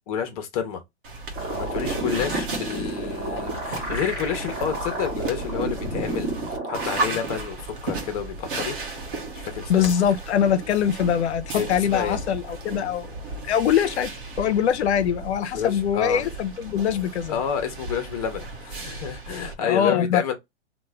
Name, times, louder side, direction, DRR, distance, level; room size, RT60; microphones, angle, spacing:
voice 1, 0.1-0.8 1.5-6.3 6.7-8.8 9.3-9.9 11.5-12.2 15.5-16.2 17.3-20.3, left 8 dB, 35° left, 0.6 m, -29 dB
sound 1, 1.0-19.5, right 3 dB, 50° right, 0.9 m, -34 dB
sound 2, 1.4-7.0, right 1 dB, 25° right, 1.0 m, -31 dB
voice 2, 9.7-13.1 13.4-14.1 14.4-17.4 19.6-20.3, left 9 dB, 70° left, 0.5 m, -23 dB
3.0 x 2.2 x 3.3 m
hypercardioid pair, 150°, 35 cm